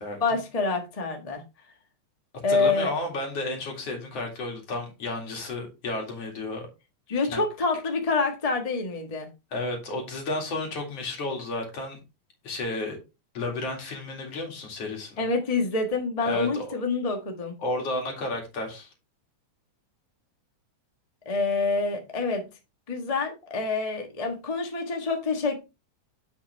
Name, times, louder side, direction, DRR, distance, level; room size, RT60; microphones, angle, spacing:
voice 1, 0.2-1.4 2.4-2.9 7.1-9.3 15.2-17.5 21.2-22.4 22.9-25.6, left 3 dB, 35° left, 0.6 m, -27 dB
voice 2, 2.5-6.7 7.3-7.4 9.5-12.0 12.4-13.0 13.3-15.2 16.3-16.7 17.6-18.9, left 2 dB, 55° left, 3.2 m, -32 dB
7.8 x 6.4 x 3.3 m
omnidirectional pair, 3.4 m